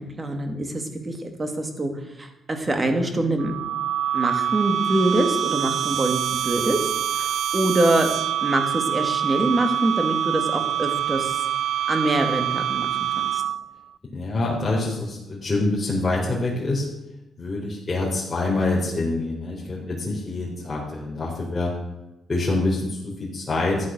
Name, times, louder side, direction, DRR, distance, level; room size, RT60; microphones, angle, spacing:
voice 1, 0.0-1.9 2.2-3.5 4.1-6.9 7.2-8.1 8.4-11.4 11.9-12.9 13.1-13.4, right 2 dB, 25° right, 6 dB, 2.5 m, -24 dB
sound 1, 3.4-13.8, right 10 dB, 70° right, 0.4 m, -25 dB
voice 2, 14.1-16.9 17.4-21.7 22.3-23.9, left 2 dB, 25° left, -5 dB, 4.1 m, -25 dB
14.0 x 10.5 x 6.4 m, 0.95 s
cardioid pair, 110°, 0 cm